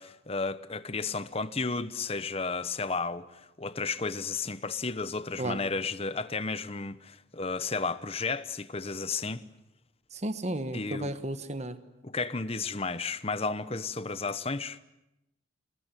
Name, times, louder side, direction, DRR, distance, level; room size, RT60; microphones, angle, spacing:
voice 1, 0.0-9.4 10.7-11.1 12.0-14.8, left 4 dB, 30° left, 1.0 m, -33 dB
voice 2, 10.1-11.8, right 1 dB, 35° right, 1.3 m, -33 dB
26.0 x 20.5 x 9.1 m
head